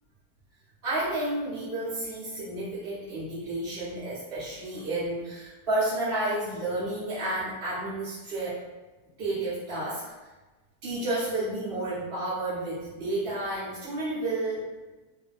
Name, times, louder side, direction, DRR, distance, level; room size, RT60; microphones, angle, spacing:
voice 1, 0.8-8.6 9.2-10.0 10.8-14.7, right 2 dB, 45° right, -11 dB, 1.0 m, -31 dB
2.7 x 2.7 x 2.5 m, 1.2 s
omnidirectional pair, 1.7 m